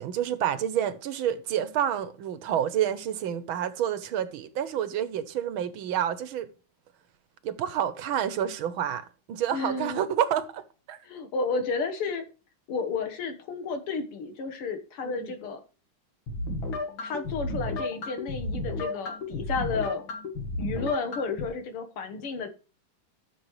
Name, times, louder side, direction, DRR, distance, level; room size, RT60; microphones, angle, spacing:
voice 1, 0.0-6.5 7.4-11.0 15.0-15.4, right 10 dB, 75° right, 1.6 m, -29 dB
voice 2, 9.5-10.1 11.0-12.2 12.7-15.6 17.0-20.0 20.6-22.5, left 4 dB, 90° left, 2.3 m, -32 dB
sound 1, 16.3-21.5, left 2 dB, 65° left, 2.6 m, -33 dB
13.5 x 6.8 x 3.1 m
omnidirectional pair, 2.4 m